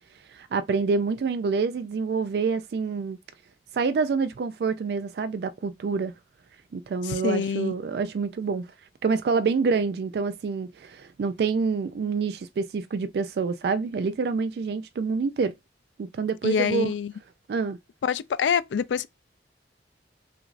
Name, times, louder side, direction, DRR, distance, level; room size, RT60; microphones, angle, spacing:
voice 1, 0.3-3.2 3.7-6.1 6.7-8.7 9.0-15.5 16.0-16.9 17.5-17.8, right 5 dB, 60° right, 0.3 m, -27 dB
voice 2, 7.0-7.7 16.4-17.1 18.0-19.1, left 7 dB, 90° left, 0.4 m, -25 dB
5.9 x 2.5 x 2.4 m
head